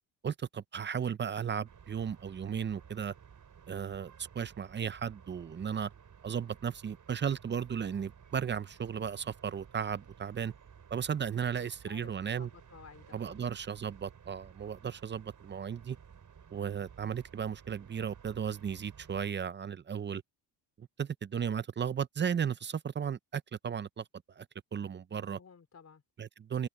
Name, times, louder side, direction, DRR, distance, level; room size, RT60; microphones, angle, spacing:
voice 1, 0.2-3.1 3.7-5.9 6.2-10.5 10.9-12.5 13.1-16.0 16.5-20.2 20.8-24.0 24.4-24.5 24.7-25.4 26.2-26.7, right 7 dB, 25° right, 0.5 m, -35 dB
sound 1, 1.6-19.3, right 7 dB, 40° right, 5.4 m, -55 dB
voice 2, 11.6-13.5 25.1-26.0, left 6 dB, 35° left, 4.0 m, -55 dB
cardioid pair, 120°, 45 cm